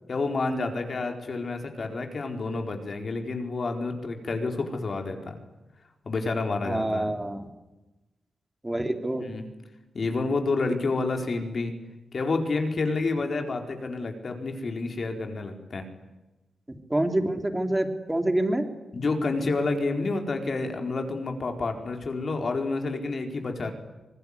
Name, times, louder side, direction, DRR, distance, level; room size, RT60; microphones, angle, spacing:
voice 1, 0.1-5.4 6.0-7.2 9.1-9.4 9.9-11.8 12.1-15.8 18.9-23.7, left 3 dB, 50° left, 4 dB, 4.4 m, -29 dB
voice 2, 6.6-7.5 8.6-9.3 16.9-18.7, right 1 dB, 15° right, 6 dB, 3.4 m, -26 dB
25.5 x 20.0 x 9.8 m, 1.1 s
wide cardioid pair, 105°, 0 cm